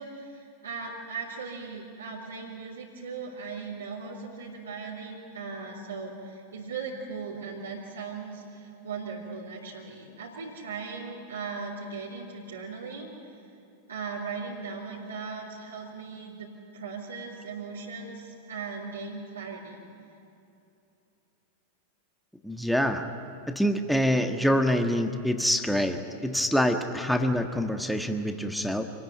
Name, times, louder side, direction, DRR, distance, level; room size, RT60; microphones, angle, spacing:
voice 1, 0.0-13.1 13.9-19.8, right 4 dB, 75° right, -5 dB, 3.1 m, -38 dB
voice 2, 22.4-23.0 23.5-28.8, equal, ahead, 5 dB, 1.5 m, -26 dB
27.0 x 20.0 x 9.4 m, 2.7 s
figure-of-eight pair, 90°, 0 cm